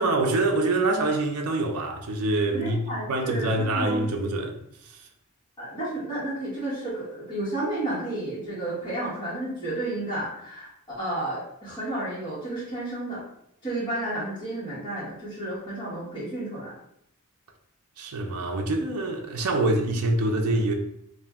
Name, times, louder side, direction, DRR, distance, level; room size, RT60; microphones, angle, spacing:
voice 1, 0.0-4.6 4.8-5.1 18.0-20.7, right 2 dB, 75° right, 0.4 m, -25 dB
voice 2, 2.5-4.4 5.6-13.2 13.6-16.7, right 1 dB, 20° left, 1.1 m, -32 dB
2.5 x 2.1 x 3.4 m
head